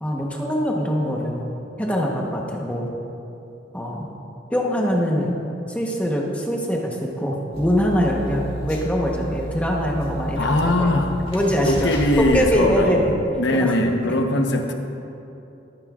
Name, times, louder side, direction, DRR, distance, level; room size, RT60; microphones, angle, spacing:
voice 1, 0.0-1.5 1.8-2.9 3.7-4.1 4.5-5.4 5.7-10.9 11.3-11.9 12.3-13.2 13.5-13.7, equal, 5° left, -2 dB, 1.0 m, -23 dB
sound 1, 7.5-12.5, equal, 30° left, 1.9 m, -32 dB
voice 2, 10.3-11.1 11.6-14.7, left 1 dB, 65° left, 3 dB, 1.0 m, -21 dB
21.0 x 9.6 x 2.5 m, 2.8 s
head